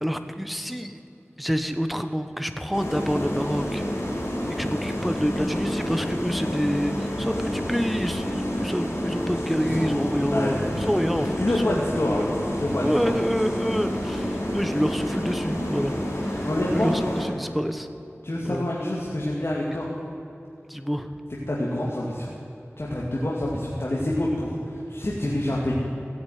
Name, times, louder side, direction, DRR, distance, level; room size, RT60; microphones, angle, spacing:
voice 1, 0.0-1.0 1.4-3.8 4.5-11.9 12.8-15.9 16.2-17.9 18.4-18.7 20.7-21.1, equal, ahead, 8 dB, 1.1 m, -27 dB
sound 1, 2.7-17.3, equal, 90° left, 4.2 m, -29 dB
voice 2, 9.7-10.5 11.4-13.1 16.4-16.9 18.2-19.9 21.5-22.3 22.8-25.7, left 1 dB, 60° left, -5 dB, 2.3 m, -27 dB
15.5 x 9.0 x 9.4 m, 2.8 s
wide cardioid pair, 45°, 5 cm